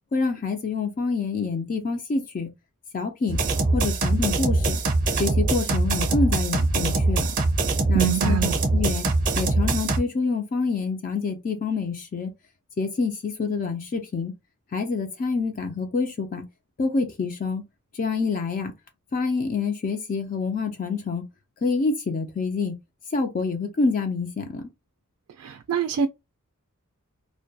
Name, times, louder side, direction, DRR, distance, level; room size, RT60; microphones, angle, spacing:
voice 1, 0.1-2.5 2.9-3.4 3.7-4.8 5.2-7.2 7.9-9.1 9.4-12.3 12.8-14.3 14.7-16.4 16.8-17.6 17.9-18.7 19.1-21.2 21.6-22.7 23.1-24.7, left 4 dB, 40° left, 0.4 m, -27 dB
sound 1, 3.3-10.0, right 2 dB, 40° right, 0.6 m, -23 dB
voice 2, 7.9-8.5 25.4-26.1, right 8 dB, 80° right, 0.3 m, -24 dB
2.2 x 2.1 x 2.6 m
head